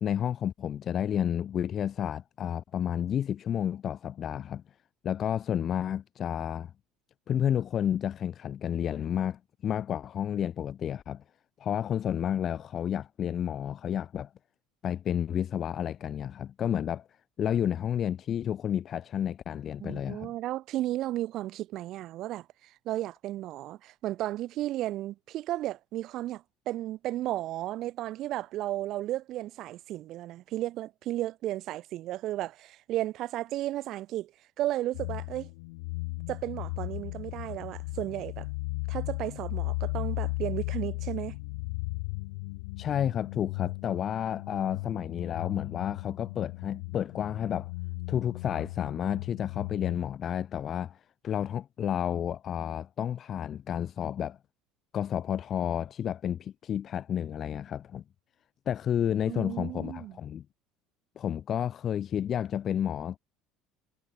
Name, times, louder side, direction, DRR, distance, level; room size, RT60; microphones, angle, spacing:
voice 1, 0.0-4.6 5.0-6.7 7.3-11.2 11.6-14.3 14.8-17.1 17.4-20.3 42.8-47.7 48.1-54.4 54.9-58.0 58.7-60.4 61.2-63.2, left 9 dB, 45° left, 1.0 m, -31 dB
voice 2, 19.8-34.3 34.6-35.5 36.3-38.5 38.9-41.4 59.3-60.2, right 14 dB, 60° right, 0.4 m, -34 dB
sound 1, 34.9-50.0, left 27 dB, 85° left, 2.2 m, -36 dB
supercardioid pair, 100°, 0 cm